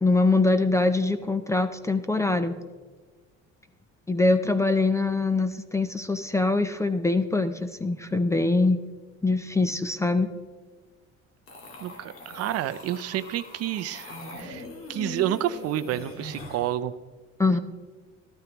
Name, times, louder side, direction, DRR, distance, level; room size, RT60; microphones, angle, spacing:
voice 1, 0.0-2.6 4.1-8.8 9.2-10.3 17.4-17.6, left 3 dB, 10° left, 10 dB, 0.4 m, -23 dB
sound 1, 11.5-16.8, left 2 dB, 45° left, 1.6 m, -41 dB
voice 2, 11.8-14.6 14.9-16.9, right 12 dB, 55° right, 14 dB, 0.5 m, -29 dB
13.5 x 12.5 x 3.0 m, 1.4 s
cardioid pair, 140°, 30 cm